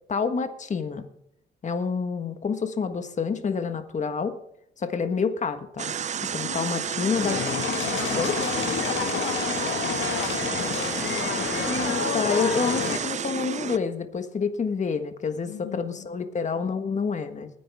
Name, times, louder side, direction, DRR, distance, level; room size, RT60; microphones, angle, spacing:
voice 1, 0.1-1.1 1.6-4.4 4.8-5.9 6.3-7.4 8.1-8.4 11.7-17.5, left 5 dB, 35° left, 1.5 m, -28 dB
sound 1, 5.8-13.8, right 8 dB, 35° right, 0.5 m, -31 dB
voice 2, 6.4-7.2 8.7-11.0 15.5-16.1, left 10 dB, 90° left, 1.1 m, -39 dB
sound 2, 7.1-13.0, left 7 dB, 70° left, 1.8 m, -29 dB
20.0 x 10.0 x 3.6 m
cardioid pair, 120°, 21 cm